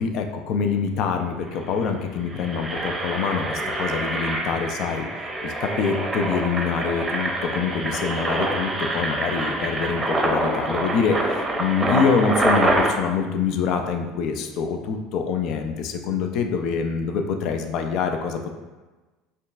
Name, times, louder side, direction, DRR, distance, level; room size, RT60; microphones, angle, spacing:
voice 1, 0.0-18.5, left 6 dB, 55° left, 5 dB, 0.4 m, -25 dB
Engine, 1.5-1.7 2.2-12.9, right 2 dB, 20° right, 0.6 m, -26 dB
5.1 x 2.5 x 2.3 m, 1.2 s
hypercardioid pair, 70°, 0 cm